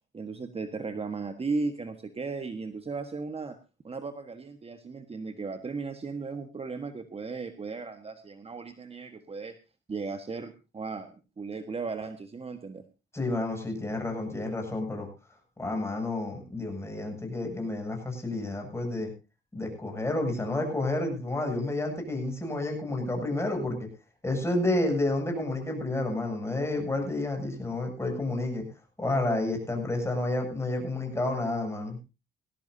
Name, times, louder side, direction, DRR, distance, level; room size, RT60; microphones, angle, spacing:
voice 1, 0.1-3.6 3.8-9.6 9.9-12.8, right 4 dB, 30° right, 8 dB, 1.5 m, -36 dB
voice 2, 13.1-15.1 15.6-19.1 19.5-23.9 24.2-28.6 29.0-32.0, left 2 dB, 15° left, 2 dB, 7.8 m, -30 dB
19.5 x 16.5 x 2.8 m, 0.29 s
cardioid pair, 90°, 20 cm